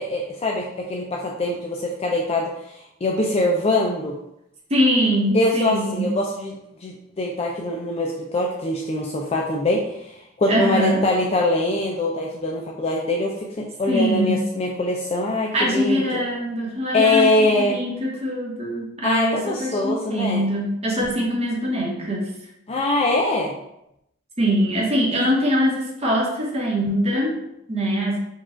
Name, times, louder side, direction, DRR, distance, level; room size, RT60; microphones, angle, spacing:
voice 1, 0.0-2.7 3.0-4.2 5.3-10.1 10.4-16.2 16.9-17.8 19.0-20.4 22.7-23.5, left 2 dB, 30° left, -1 dB, 0.4 m, -23 dB
voice 2, 4.7-6.1 10.5-11.1 13.9-14.4 15.5-22.3 24.4-28.2, equal, 30° right, -3 dB, 1.0 m, -23 dB
4.6 x 2.4 x 4.3 m, 0.82 s
head